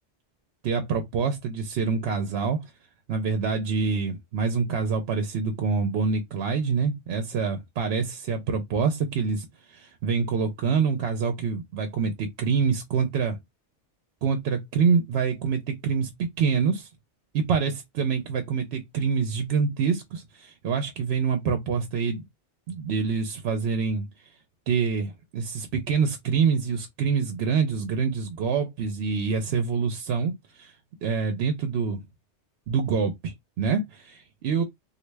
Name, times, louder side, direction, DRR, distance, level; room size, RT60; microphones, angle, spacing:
voice 1, 0.6-2.6 3.1-13.4 14.2-16.1 16.4-16.9 17.3-22.2 22.7-24.1 24.7-30.7 31.0-32.0 32.7-34.6, right 5 dB, 70° right, 0.8 m, -26 dB
3.1 x 2.4 x 3.2 m
omnidirectional pair, 1.2 m